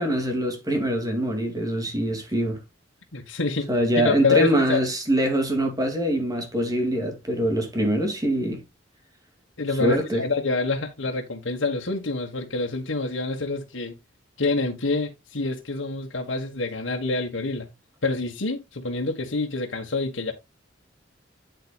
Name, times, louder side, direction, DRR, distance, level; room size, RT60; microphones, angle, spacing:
voice 1, 0.0-2.6 3.7-8.6 9.8-10.2, equal, 20° right, 2.7 m, -24 dB
voice 2, 3.1-3.7 4.0-4.8 9.6-14.0 14.4-17.7 18.0-20.3, left 3 dB, 85° left, 1.7 m, -27 dB
9.3 x 7.8 x 2.5 m
head